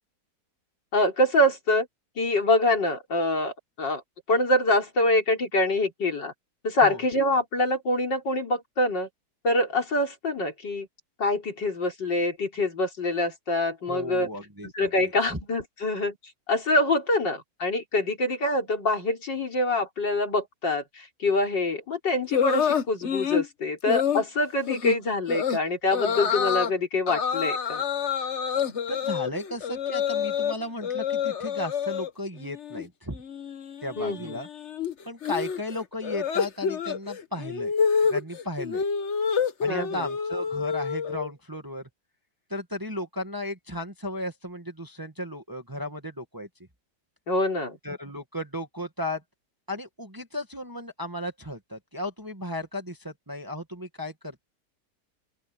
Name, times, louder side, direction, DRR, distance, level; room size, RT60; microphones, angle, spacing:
voice 1, 0.9-1.9 2.2-4.0 4.3-6.3 6.6-9.1 9.4-10.9 11.2-14.3 14.6-16.2 16.5-27.8 34.0-34.4 39.7-40.1 47.3-47.8, left 2 dB, 85° left, 4.6 m, -25 dB
voice 2, 13.9-14.9 15.3-15.4 28.9-33.2 33.8-34.5 35.0-37.7 38.0-38.8 39.6-41.9 42.5-46.5 47.8-49.2 49.7-54.4, left 1 dB, 10° right, 1.9 m, -35 dB
sound 1, 22.3-23.5 23.9-24.2 24.7-24.9 25.3-25.6 25.9-26.7 27.1-30.5 30.8-32.1 32.4-32.8 33.1-41.3, left 7 dB, 45° left, 1.2 m, -27 dB
open air
omnidirectional pair, 1.9 m